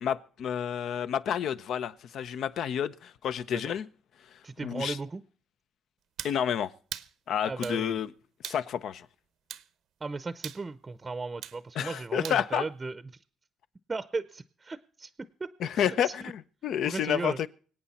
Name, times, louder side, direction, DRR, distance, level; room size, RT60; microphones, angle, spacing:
voice 1, 0.0-3.9 4.6-5.0 6.2-6.7 7.3-8.1 8.4-9.1 11.8-12.7 15.6-17.5, left 9 dB, 70° left, 0.7 m, -30 dB
voice 2, 4.4-5.2 7.5-8.0 10.0-13.0 13.9-15.5 15.8-16.3 16.8-17.4, right 3 dB, 25° right, 0.6 m, -36 dB
sound 1, 6.2-6.4 6.9-7.1 7.6-7.8 8.4-8.6 9.5-9.7 10.4-10.6 11.4-11.6 12.2-12.4, right 11 dB, 80° right, 0.8 m, -39 dB
25.0 x 8.9 x 4.2 m
cardioid pair, 110°, 0 cm